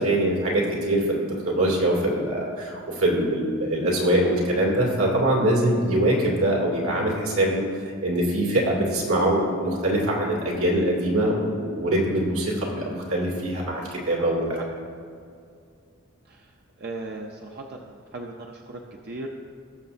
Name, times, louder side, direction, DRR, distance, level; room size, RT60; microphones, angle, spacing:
voice 1, 0.0-7.6 8.0-14.6, right 1 dB, 85° right, -2 dB, 2.4 m, -23 dB
voice 2, 16.8-19.3, right 2 dB, 45° right, 1 dB, 0.6 m, -37 dB
19.0 x 6.7 x 2.6 m, 2.3 s
head